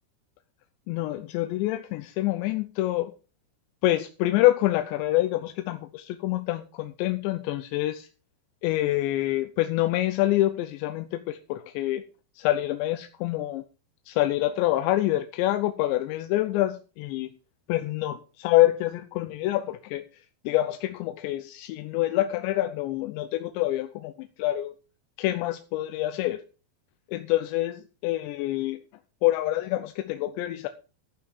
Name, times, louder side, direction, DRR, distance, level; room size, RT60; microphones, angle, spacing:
voice 1, 0.9-3.1 3.8-8.1 8.6-12.0 12.4-13.6 14.1-17.3 17.7-20.1 20.5-24.7 25.2-26.4 27.1-28.8 29.2-30.7, left 15 dB, 80° left, 9 dB, 2.8 m, -26 dB
14.0 x 5.7 x 6.2 m, 0.35 s
omnidirectional pair, 5.5 m